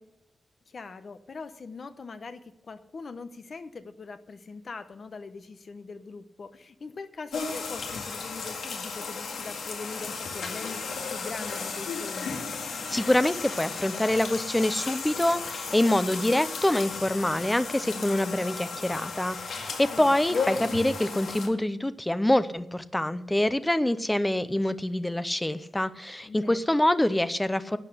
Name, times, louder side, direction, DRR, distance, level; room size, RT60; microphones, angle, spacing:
voice 1, 0.7-2.4 2.7-12.3 19.9-20.2 26.2-26.6, left 4 dB, 40° left, 10 dB, 0.9 m, -42 dB
sound 1, 7.3-21.5, left 4 dB, 80° left, 2.0 m, -34 dB
sound 2, 8.7-12.3, left 3 dB, 55° left, 5.4 m, -54 dB
voice 2, 12.9-27.8, left 1 dB, 10° left, 13 dB, 0.5 m, -25 dB
11.5 x 8.2 x 6.6 m, 0.91 s
wide cardioid pair, 175°, 0 cm